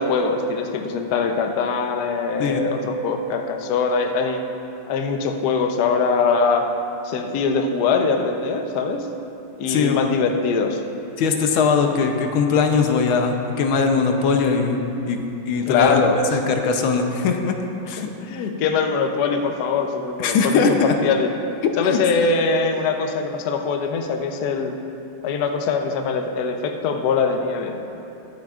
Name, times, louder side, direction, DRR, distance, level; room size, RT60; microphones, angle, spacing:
voice 1, 0.0-4.4 4.9-6.7 7.0-9.1 9.6-10.8 15.7-16.2 18.0-21.3 21.8-24.7 25.2-27.8, left 4 dB, 65° left, 4 dB, 1.1 m, -22 dB
voice 2, 9.7-10.0 11.2-14.8 15.0-15.2 15.5-17.6 17.9-18.1 20.2-20.9, left 5 dB, 80° left, 4 dB, 1.6 m, -20 dB
20.5 x 7.8 x 2.4 m, 2.9 s
omnidirectional pair, 2.2 m